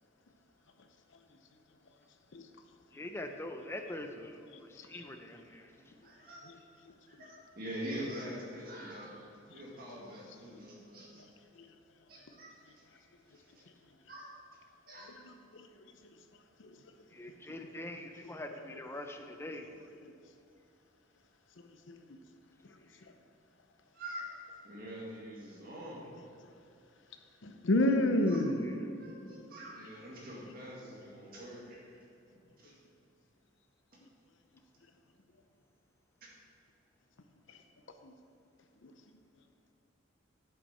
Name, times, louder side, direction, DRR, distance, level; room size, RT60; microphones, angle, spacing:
voice 1, 2.9-5.7 17.1-19.7, left 1 dB, 10° left, 5 dB, 0.5 m, -43 dB
voice 2, 4.8-5.1 6.0-6.7 7.1-11.3 12.1-12.8 13.3-13.7 14.1-14.3 14.9-15.2 23.9-24.3 24.6-26.1 28.3-28.5 28.9-32.0 32.6-32.8 36.2-36.3, equal, 45° right, -4 dB, 1.9 m, -45 dB
voice 3, 21.6-22.0 27.4-28.6 38.0-38.1 38.8-38.9, left 1 dB, 65° left, 6 dB, 0.7 m, -29 dB
8.7 x 7.1 x 4.3 m, 2.7 s
head